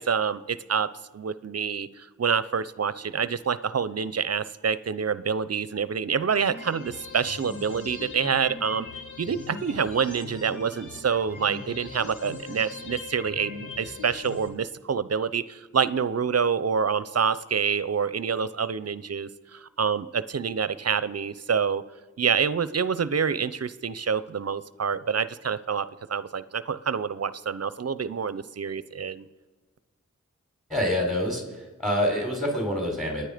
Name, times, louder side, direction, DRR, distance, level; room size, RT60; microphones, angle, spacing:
voice 1, 0.0-8.9 9.2-21.8 22.2-29.3, right 6 dB, 55° right, 16 dB, 0.7 m, -27 dB
sound 1, 6.5-14.5, left 4 dB, 80° left, 2.0 m, -40 dB
voice 2, 30.7-31.4 31.8-33.2, left 1 dB, ahead, 1 dB, 4.2 m, -26 dB
28.5 x 9.8 x 5.1 m, 1.3 s
cardioid pair, 50°, 30 cm